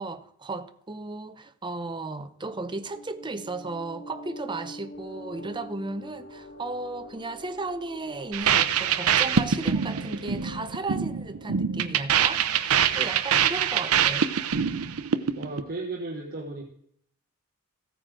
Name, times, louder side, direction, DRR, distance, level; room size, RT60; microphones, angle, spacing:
voice 1, 0.0-14.3, right 3 dB, 20° right, 0.7 m, -35 dB
sound 1, 2.5-12.7, equal, 55° left, 1.9 m, -46 dB
sound 2, 8.3-15.6, right 8 dB, 75° right, 0.7 m, -24 dB
voice 2, 15.3-16.6, right 2 dB, 45° right, 1.5 m, -34 dB
15.0 x 9.3 x 3.8 m
head